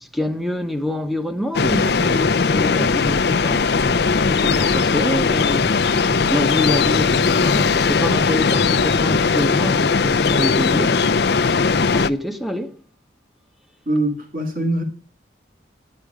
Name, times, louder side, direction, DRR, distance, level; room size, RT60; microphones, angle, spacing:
voice 1, 0.0-11.0 11.7-12.8, left 1 dB, ahead, 0.9 m, -26 dB
sound 1, 1.5-12.1, left 5 dB, 65° left, 0.5 m, -18 dB
sound 2, 1.6-9.5, right 1 dB, 65° right, 2.9 m, -37 dB
voice 2, 13.9-14.8, right 1 dB, 50° right, 2.1 m, -22 dB
11.0 x 9.8 x 4.9 m
head